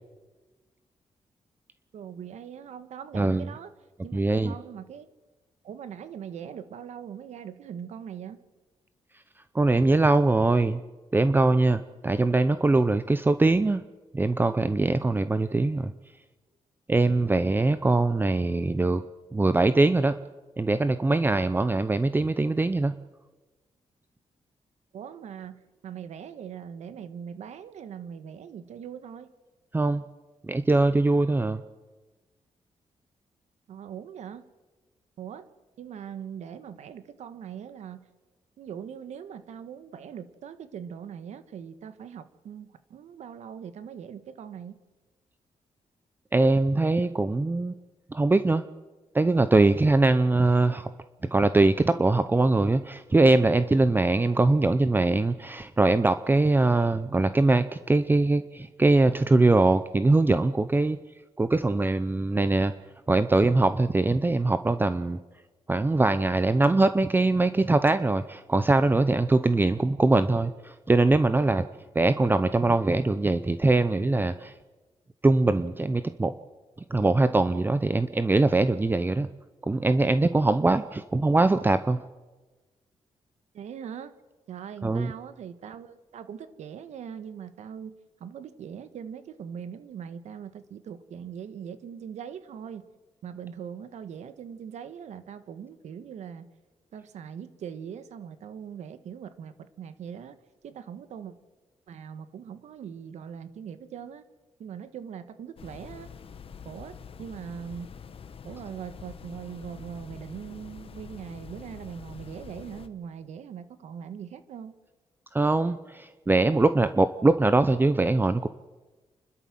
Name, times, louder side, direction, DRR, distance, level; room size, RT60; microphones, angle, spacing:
voice 1, 1.9-3.7 4.0-5.1 5.6-8.4 24.9-29.3 33.7-34.4 35.2-35.4 35.8-38.1 38.6-44.8 83.5-84.1 84.5-87.9 88.2-92.9 93.2-96.5 96.9-100.4 100.6-101.3 101.9-104.2 104.6-106.1 106.6-107.9 108.4-114.7, right 8 dB, 85° right, 12 dB, 1.5 m, -41 dB
voice 2, 3.1-3.5 4.1-4.5 9.5-10.8 11.1-13.8 14.1-15.9 16.9-19.0 19.3-20.2 20.6-22.9 29.7-30.0 30.5-31.6 46.3-47.8 48.1-48.6 49.1-50.9 51.3-61.0 61.4-62.7 63.1-65.2 65.7-71.7 71.9-74.5 75.2-76.3 76.9-79.3 79.6-82.0 84.8-85.1 115.3-118.5, right 2 dB, 15° right, 12 dB, 0.7 m, -22 dB
sound 1, 105.6-112.9, left 6 dB, 55° left, 1.3 m, -45 dB
30.0 x 12.5 x 7.6 m, 1.2 s
cardioid pair, 115°, 12 cm